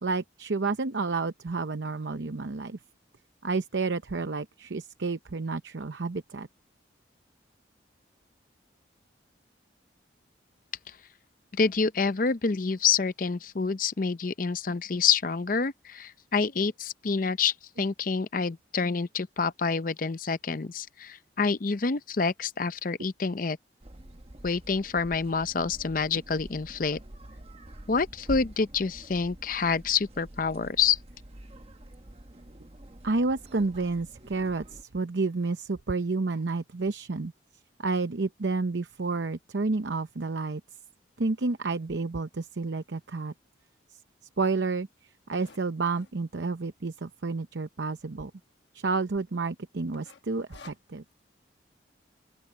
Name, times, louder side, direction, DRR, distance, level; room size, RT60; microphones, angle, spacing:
voice 1, 0.0-2.8 3.4-6.5 33.0-37.3 37.8-40.6 41.2-43.3 44.4-44.9 45.3-48.3 48.7-51.0, right 3 dB, 70° right, 0.7 m, -30 dB
voice 2, 11.5-23.6 24.4-27.0 27.9-31.0, left 5 dB, 45° left, 0.6 m, -27 dB
sound 1, 23.8-34.8, right 1 dB, 30° right, 1.1 m, -47 dB
sound 2, 42.8-42.9 43.5-43.6 43.8-43.9 44.1-46.3 46.9-47.3 47.7-47.8 48.0-48.1 48.6-49.0 49.3-49.5 49.9-51.2, left 4 dB, 70° left, 1.2 m, -52 dB
open air
head